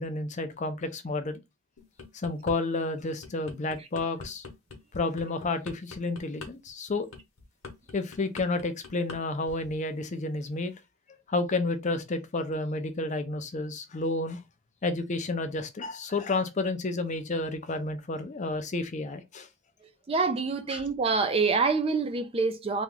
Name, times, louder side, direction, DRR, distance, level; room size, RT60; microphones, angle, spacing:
voice 1, 0.0-1.4 2.1-4.4 4.9-7.1 7.9-10.7 11.3-14.4 14.8-19.5 20.7-20.8, left 2 dB, 35° left, 0.5 m, -31 dB
sound 1, 1.8-2.6 3.0-9.2 9.5-9.8, left 3 dB, 75° left, 1.0 m, -43 dB
voice 2, 20.1-22.8, right 4 dB, 25° right, 0.4 m, -26 dB
2.9 x 2.4 x 3.7 m
head